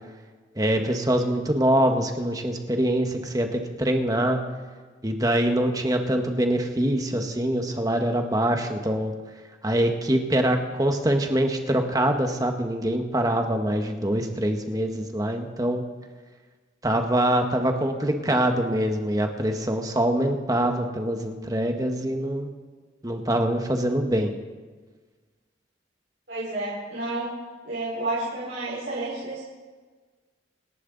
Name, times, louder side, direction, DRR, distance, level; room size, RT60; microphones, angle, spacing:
voice 1, 0.6-4.4 5.0-9.1 9.6-15.8 16.8-22.5 23.0-24.3, right 1 dB, 20° right, 4 dB, 1.4 m, -24 dB
voice 2, 26.3-27.3 27.6-29.4, right 2 dB, 60° right, -8 dB, 4.7 m, -30 dB
27.5 x 11.0 x 4.0 m, 1.4 s
head